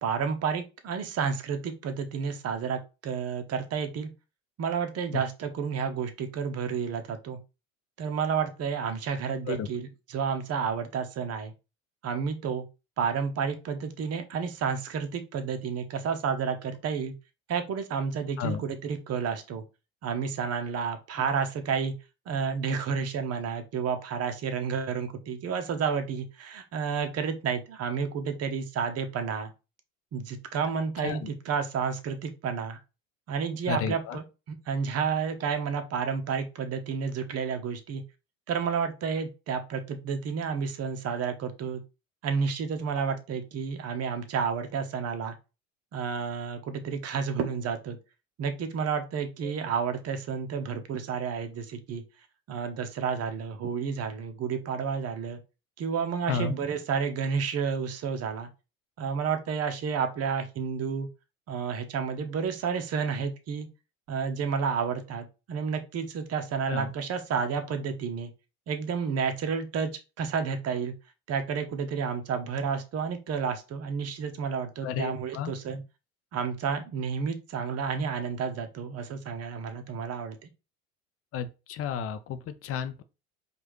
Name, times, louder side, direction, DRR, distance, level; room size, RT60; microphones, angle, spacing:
voice 1, 0.0-4.1 4.6-7.4 8.0-11.5 12.0-12.7 13.0-17.1 17.5-19.6 20.0-21.9 22.3-29.5 30.1-32.8 33.3-38.0 38.5-41.8 42.2-45.3 45.9-48.0 48.4-52.0 52.5-55.4 55.8-58.5 59.0-61.1 61.5-63.7 64.1-68.3 68.7-69.9 70.2-70.9 71.3-75.8 76.3-80.5, right 6 dB, 35° right, 0.9 m, -31 dB
voice 2, 33.7-34.2 49.4-49.5 56.3-56.6 66.7-66.9 74.8-75.5 81.3-83.0, left 6 dB, 35° left, 0.5 m, -32 dB
4.6 x 2.5 x 3.1 m
hypercardioid pair, 75°, 41 cm